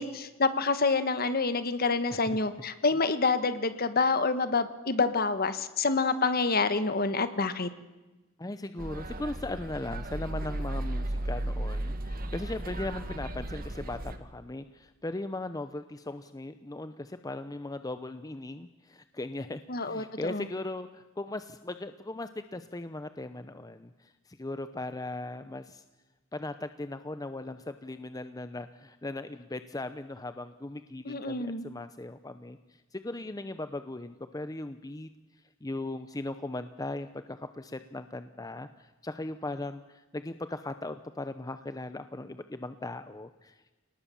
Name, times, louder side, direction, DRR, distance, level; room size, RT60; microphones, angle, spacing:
voice 1, 0.0-7.7 19.7-20.4 31.0-31.6, left 4 dB, 45° left, 11 dB, 1.4 m, -27 dB
voice 2, 8.4-25.8 26.3-35.1 35.6-43.6, left 2 dB, 20° left, 10 dB, 0.7 m, -38 dB
sound 1, 8.8-14.2, right 1 dB, 45° right, 1.7 m, -35 dB
29.0 x 19.0 x 7.1 m, 1.1 s
head